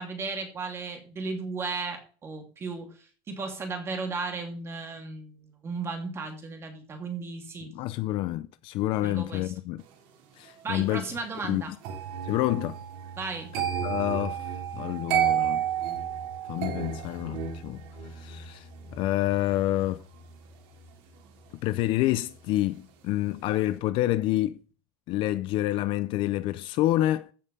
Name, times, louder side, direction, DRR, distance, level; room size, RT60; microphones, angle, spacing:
voice 1, 0.0-7.7 9.0-9.5 10.6-11.7 13.2-13.5, right 4 dB, 20° right, 2.7 m, -35 dB
voice 2, 7.7-9.8 10.4-11.0 11.5-11.8 12.2-12.8 13.8-15.6 16.4-17.8 18.1-18.7 18.9-20.0 21.6-24.6 25.1-27.3, left 15 dB, 40° left, 0.5 m, -28 dB
sound 1, 11.8-22.8 23.1-23.5, right 9 dB, 60° right, 3.7 m, -33 dB
15.5 x 5.5 x 5.4 m
cardioid pair, 175°, 13 cm